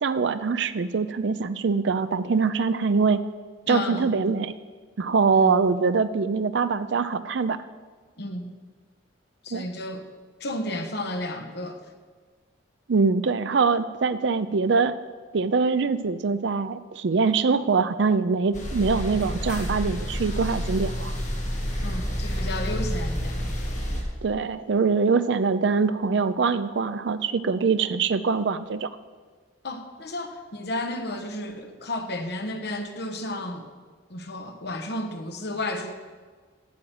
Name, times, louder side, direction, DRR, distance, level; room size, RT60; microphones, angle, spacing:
voice 1, 0.0-3.2 3.7-4.5 5.0-7.6 9.5-9.7 12.9-15.0 15.3-21.2 23.9-28.9, right 4 dB, 65° right, 12 dB, 0.5 m, -23 dB
voice 2, 3.7-4.2 5.3-5.6 8.2-8.5 9.4-10.1 10.4-11.8 21.8-23.7 29.6-33.7 34.1-35.9, left 1 dB, 60° left, 5 dB, 1.2 m, -32 dB
sound 1, 18.5-24.0, equal, 40° left, 2.0 m, -29 dB
8.6 x 7.6 x 7.9 m, 1.5 s
head